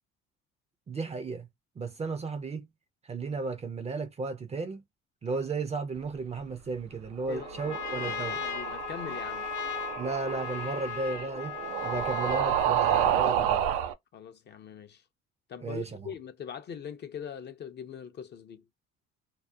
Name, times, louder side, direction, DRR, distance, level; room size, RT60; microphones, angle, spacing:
voice 1, 0.9-1.5 1.8-2.7 3.0-4.8 5.2-8.4 10.0-11.6 11.8-13.7 15.6-16.1, right 4 dB, 20° right, 0.4 m, -34 dB
sound 1, 7.2-13.9, right 10 dB, 90° right, 0.5 m, -30 dB
Trumpet, 7.3-13.3, left 7 dB, 80° left, 0.8 m, -37 dB
voice 2, 7.3-9.5 14.1-15.0 15.5-18.6, left 7 dB, 35° left, 0.4 m, -42 dB
2.3 x 2.1 x 2.6 m
cardioid pair, 105°, 30 cm